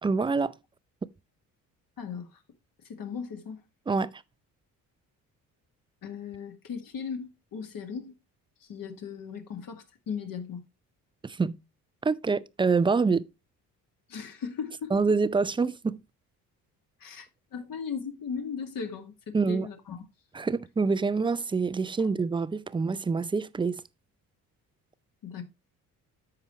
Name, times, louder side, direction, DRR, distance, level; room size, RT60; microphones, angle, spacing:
voice 1, 0.0-0.5 3.9-4.2 11.2-11.6 12.0-13.3 14.9-16.0 19.3-19.7 20.3-23.8, right 4 dB, 15° right, 0.4 m, -26 dB
voice 2, 2.0-2.4 2.9-3.6 6.0-8.1 8.6-10.6 14.1-14.9 17.0-20.0 22.0-22.1 25.2-25.4, left 6 dB, 60° left, 2.0 m, -37 dB
13.5 x 4.8 x 3.0 m
supercardioid pair, 70°, 39 cm